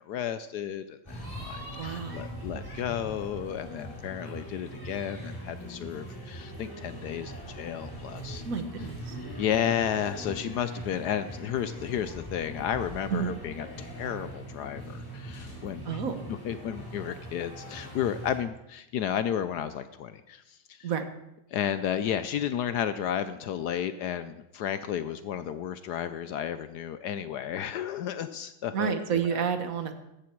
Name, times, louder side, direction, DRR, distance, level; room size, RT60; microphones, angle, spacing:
voice 1, 0.1-8.4 9.4-16.0 16.4-20.9 21.5-29.4, left 9 dB, 75° left, 12 dB, 0.9 m, -33 dB
sound 1, 1.1-18.4, equal, 10° left, 3.7 m, -41 dB
voice 2, 1.8-2.3 8.4-9.2 13.1-13.3 15.8-16.2 20.8-21.0 28.7-29.9, right 7 dB, 45° right, 8 dB, 1.4 m, -30 dB
15.5 x 12.5 x 4.6 m, 0.87 s
omnidirectional pair, 2.4 m